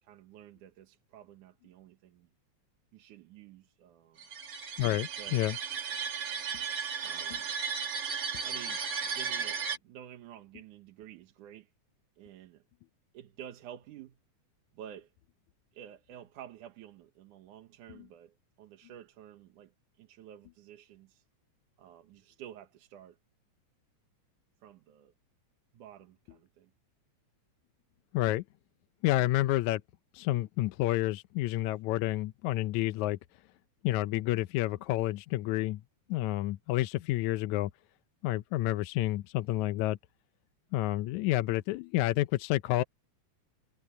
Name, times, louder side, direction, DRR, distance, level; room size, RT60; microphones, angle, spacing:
voice 1, 0.0-2.3 2.9-4.2 5.2-5.4 7.0-7.5 8.4-11.7 12.2-12.6 13.1-14.2 14.7-15.1 15.7-21.2 21.8-23.2 24.6-25.1 25.7-26.7, right 10 dB, 85° right, 2.8 m, -50 dB
sound 1, 4.2-9.8, right 6 dB, 45° right, 1.9 m, -35 dB
voice 2, 4.8-5.6 28.1-28.4 29.0-29.8 30.1-33.2 33.8-35.8 36.1-37.7 38.2-40.0 40.7-42.8, left 16 dB, 80° left, 1.9 m, -29 dB
omnidirectional pair, 3.5 m